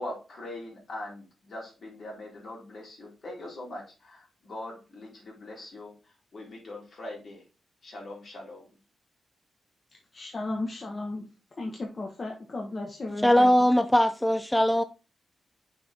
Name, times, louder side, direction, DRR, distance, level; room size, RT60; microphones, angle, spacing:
voice 1, 0.0-7.4 7.8-8.8, left 1 dB, 65° left, 3.5 m, -42 dB
voice 2, 10.1-11.2 11.6-13.5, left 2 dB, 45° left, 1.3 m, -35 dB
voice 3, 13.2-14.8, left 1 dB, 10° left, 0.4 m, -21 dB
5.9 x 4.5 x 3.5 m
cardioid pair, 60°, 0 cm